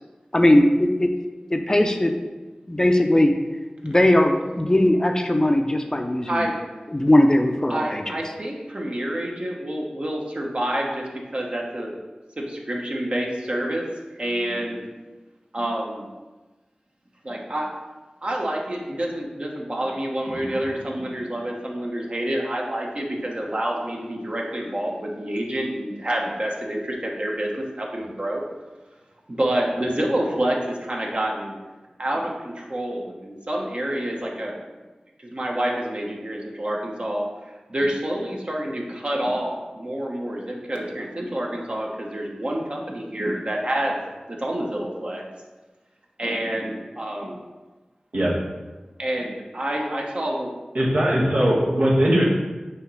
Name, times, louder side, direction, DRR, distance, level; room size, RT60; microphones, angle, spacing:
voice 1, 0.3-1.1 1.5-2.1 2.7-3.3 3.8-6.5 6.9-8.1, left 1 dB, 25° left, 4 dB, 0.5 m, -19 dB
voice 2, 7.7-11.0 11.3-11.9 12.5-13.8 14.1-14.8 15.5-16.1 17.2-17.7 18.2-28.4 29.3-31.5 32.0-34.6 35.2-37.2 37.7-44.0 44.3-45.2 46.2-47.4 49.0-50.5, right 1 dB, 45° right, -1 dB, 1.1 m, -28 dB
voice 3, 50.7-52.2, equal, 70° right, -5 dB, 1.3 m, -19 dB
6.4 x 3.1 x 4.8 m, 1.2 s
wide cardioid pair, 65°, 3 cm